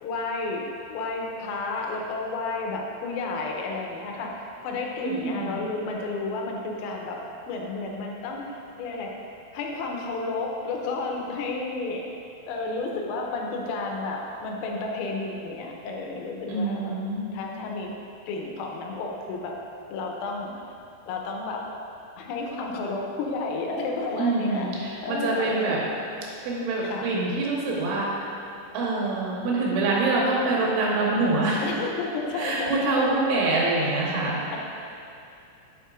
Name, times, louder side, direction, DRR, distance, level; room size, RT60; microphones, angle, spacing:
voice 1, 0.0-7.2 7.5-9.1 9.5-12.1 12.5-16.9 17.3-17.9 18.3-19.6 19.9-20.5 21.1-21.7 22.2-24.7 25.0-25.8 26.8-27.1 31.6-34.6, left 3 dB, 85° left, 0 dB, 3.4 m, -32 dB
voice 2, 5.0-5.6 16.5-17.4 24.2-25.8 26.4-28.3 28.7-31.6 32.3-34.4, right 3 dB, 75° right, -4 dB, 3.3 m, -25 dB
9.6 x 8.3 x 2.5 m, 2.6 s
omnidirectional pair, 6.0 m